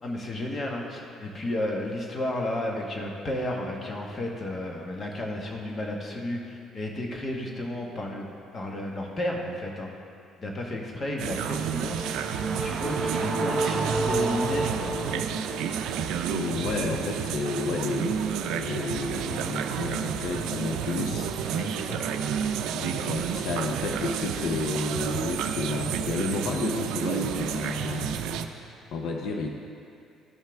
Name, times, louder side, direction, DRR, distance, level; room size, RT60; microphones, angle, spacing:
voice 1, 0.0-8.3 8.5-9.9 10.4-12.2 12.6-15.2 21.5-22.0, left 1 dB, 30° left, 0 dB, 1.2 m, -32 dB
sound 1, 11.2-28.5, right 8 dB, 85° right, 0.4 m, -30 dB
sound 2, 11.5-15.8, right 3 dB, 35° right, 0.8 m, -30 dB
voice 2, 16.3-21.3 22.7-28.2 28.6-29.5, left 3 dB, 75° left, 1 dB, 0.7 m, -31 dB
14.0 x 5.7 x 3.4 m, 2.5 s
cardioid pair, 140°, 0 cm